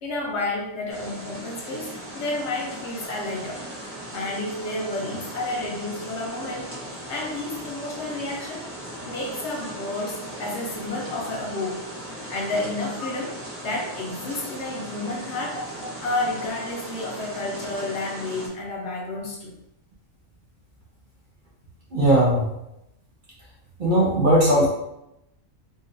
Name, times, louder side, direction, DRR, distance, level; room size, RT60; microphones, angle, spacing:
voice 1, 0.0-3.6 4.1-6.7 7.1-8.6 9.0-11.8 12.1-19.5, left 2 dB, 65° left, -2 dB, 1.1 m, -31 dB
sound 1, 0.9-18.5, right 1 dB, 15° right, 0.6 m, -38 dB
voice 2, 21.9-22.4 23.8-24.7, right 1 dB, 45° right, -5 dB, 0.8 m, -18 dB
3.8 x 2.5 x 2.5 m, 0.85 s
omnidirectional pair, 1.3 m